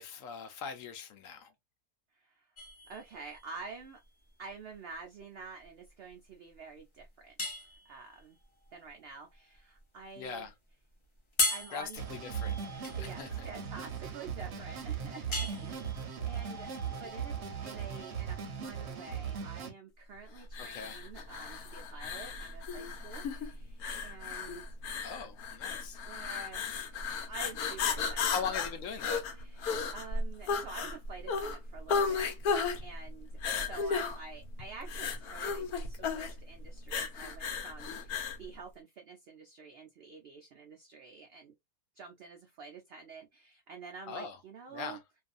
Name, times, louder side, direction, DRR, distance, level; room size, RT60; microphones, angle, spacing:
voice 1, 0.0-1.5 10.2-10.5 11.7-12.6 13.2-13.3 20.6-21.0 25.0-26.0 28.3-29.2 44.1-44.4 44.7-45.0, left 6 dB, 70° left, 0.9 m, -40 dB
voice 2, 2.1-2.5 2.9-4.0 4.4-8.4 8.7-10.5 11.5-12.0 12.7-24.7 26.1-27.0 27.3-28.6 29.3-41.5 41.9-45.0, right 4 dB, 75° right, 0.5 m, -49 dB
sound 1, 2.6-19.4, left 2 dB, 35° left, 0.4 m, -40 dB
sound 2, 12.0-19.7, right 7 dB, 55° right, 0.9 m, -38 dB
sound 3, 20.5-38.4, left 5 dB, 85° left, 1.1 m, -35 dB
2.6 x 2.4 x 2.4 m
omnidirectional pair, 1.6 m